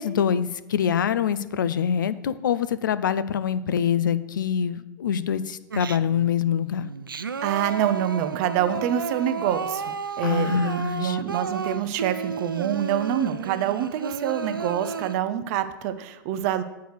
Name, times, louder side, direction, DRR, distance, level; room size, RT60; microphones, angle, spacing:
voice 1, 0.0-6.9 10.2-11.2, left 8 dB, 65° left, 15 dB, 0.4 m, -25 dB
Singing, 5.7-6.3 6.8-15.1, right 5 dB, 80° right, 0.4 m, -32 dB
voice 2, 7.4-16.6, right 10 dB, 45° right, 11 dB, 0.6 m, -26 dB
7.8 x 4.7 x 6.5 m, 0.97 s
figure-of-eight pair, 95°, 11 cm